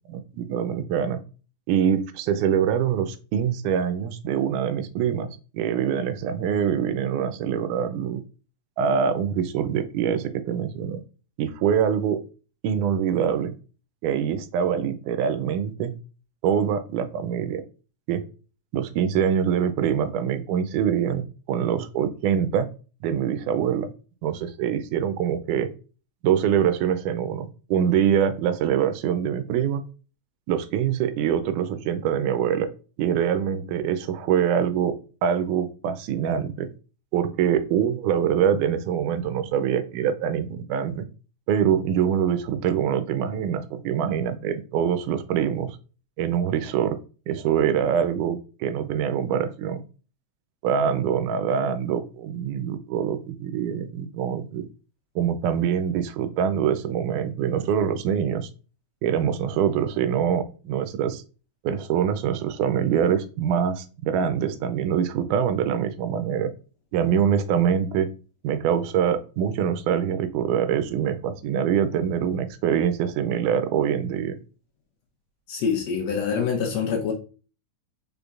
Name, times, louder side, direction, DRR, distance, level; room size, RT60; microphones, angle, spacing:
voice 1, 0.1-1.2 1.7-8.2 8.8-11.0 11.4-12.2 12.6-13.5 14.0-15.9 16.4-17.6 18.1-18.2 18.7-22.7 23.0-23.9 24.2-25.7 26.2-29.8 30.5-32.7 33.0-34.9 35.2-36.7 37.1-41.1 41.5-45.7 46.2-47.0 47.3-49.8 50.6-54.7 55.2-58.5 59.0-61.2 61.6-66.5 66.9-68.1 68.4-74.4, right 8 dB, 85° right, 2.1 m, -24 dB
voice 2, 75.5-77.1, left 6 dB, 70° left, 1.8 m, -25 dB
5.1 x 4.3 x 2.3 m
omnidirectional pair, 3.6 m